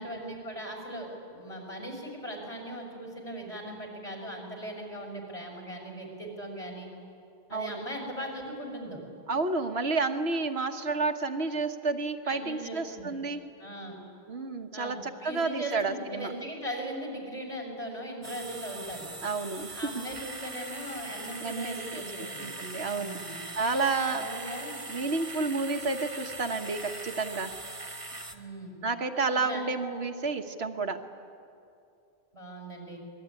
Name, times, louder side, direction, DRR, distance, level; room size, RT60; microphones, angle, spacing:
voice 1, 0.0-6.9 7.5-9.0 10.3-10.4 12.3-13.1 13.6-13.9 14.7-19.1 19.7-22.5 23.0-23.3 24.1-24.8 28.3-28.7 29.3-29.6 32.3-33.0, right 1 dB, 30° left, 0 dB, 5.9 m, -39 dB
voice 2, 7.5-7.8 9.3-13.4 14.3-16.3 19.2-19.8 21.4-23.2 23.6-24.3 24.9-27.6 28.8-31.0, right 3 dB, 75° right, 6 dB, 1.6 m, -30 dB
sound 1, 18.2-28.4, right 2 dB, 30° right, 1.4 m, -41 dB
26.5 x 21.0 x 9.8 m, 2.6 s
omnidirectional pair, 1.1 m